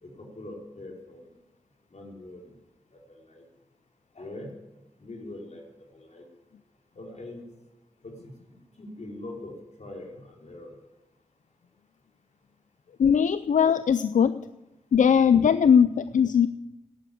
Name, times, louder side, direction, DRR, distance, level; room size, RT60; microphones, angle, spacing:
voice 1, 0.0-1.3 1.9-2.4 3.2-3.4 4.1-4.5 5.0-5.6 5.9-6.2 7.0-7.4 8.0-8.3 8.8-9.5 9.8-10.7 15.6-15.7, left 2 dB, 65° left, 0 dB, 4.4 m, -42 dB
voice 2, 13.0-14.4 14.9-16.5, left 7 dB, 90° left, 14 dB, 0.4 m, -20 dB
13.5 x 11.0 x 8.5 m, 0.96 s
wide cardioid pair, 60°, 13 cm